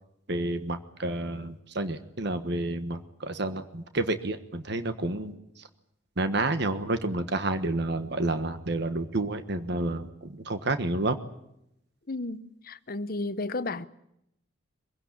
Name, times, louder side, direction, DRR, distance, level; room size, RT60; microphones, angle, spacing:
voice 1, 0.3-5.3 6.2-11.2, right 2 dB, 55° right, 1.4 m, -30 dB
voice 2, 12.1-13.9, left 2 dB, 45° left, 0.9 m, -33 dB
24.0 x 16.5 x 10.0 m
head